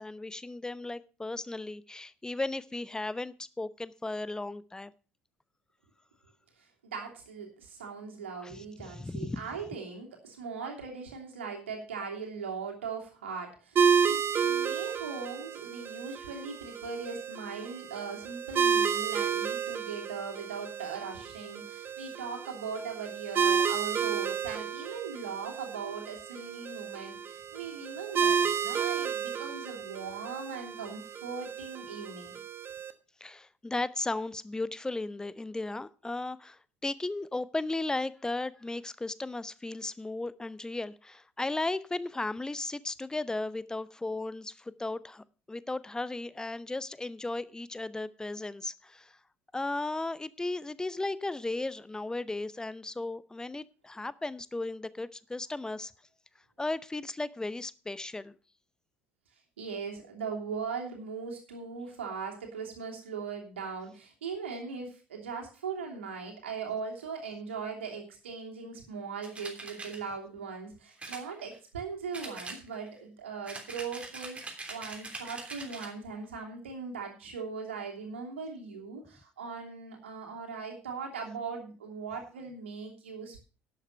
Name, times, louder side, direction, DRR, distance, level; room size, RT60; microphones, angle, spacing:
voice 1, 0.0-4.9 8.4-9.5 33.2-49.2 49.5-55.9 56.6-58.4, left 2 dB, 10° left, 18 dB, 0.6 m, -35 dB
voice 2, 6.6-32.4 59.6-83.4, right 5 dB, 75° right, 1 dB, 2.9 m, -39 dB
sound 1, 13.8-32.9, right 6 dB, 35° right, 1.2 m, -31 dB
sound 2, 69.2-70.0 71.0-71.8 72.1-73.0 73.4-76.0, right 3 dB, 20° right, 3.2 m, -43 dB
11.5 x 8.2 x 5.5 m, 0.36 s
figure-of-eight pair, 60°, 7 cm